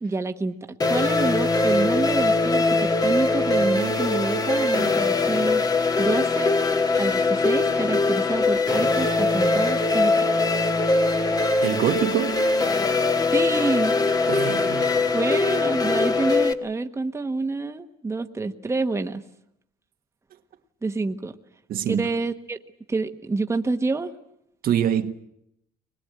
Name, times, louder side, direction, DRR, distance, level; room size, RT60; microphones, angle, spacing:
voice 1, 0.0-5.6 6.0-6.5 7.0-10.3 13.3-13.9 15.1-19.2 20.8-21.4 21.9-22.6 22.9-24.1, right 3 dB, 15° right, 1.3 m, -27 dB
sound 1, 0.8-16.5, left 3 dB, 20° left, 1.4 m, -22 dB
voice 2, 11.6-12.4 14.3-15.1 21.7-22.1 24.6-25.1, right 10 dB, 60° right, 1.4 m, -25 dB
23.5 x 21.5 x 8.8 m
cardioid pair, 110°, 17 cm